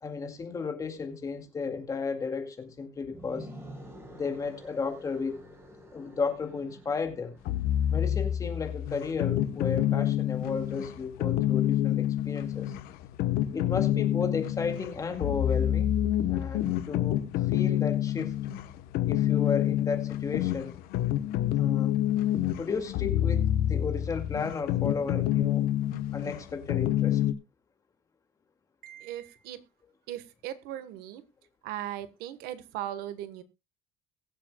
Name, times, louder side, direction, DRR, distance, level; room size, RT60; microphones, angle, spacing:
voice 1, 0.0-3.5 4.1-5.4 5.9-7.3 7.9-12.8 13.5-15.9 16.3-17.2 17.5-18.4 19.0-20.7 21.5-22.0 22.6-25.6 26.1-27.2, left 5 dB, 20° left, 5 dB, 2.1 m, -34 dB
sound 1, 3.0-8.0, equal, 15° right, 4.2 m, -48 dB
sound 2, 7.5-27.3, left 12 dB, 75° left, 1.0 m, -28 dB
voice 2, 28.8-29.6 30.1-31.2 31.6-33.4, right 12 dB, 80° right, 13 dB, 1.3 m, -38 dB
22.0 x 7.6 x 2.2 m, 0.24 s
cardioid pair, 175°, 16 cm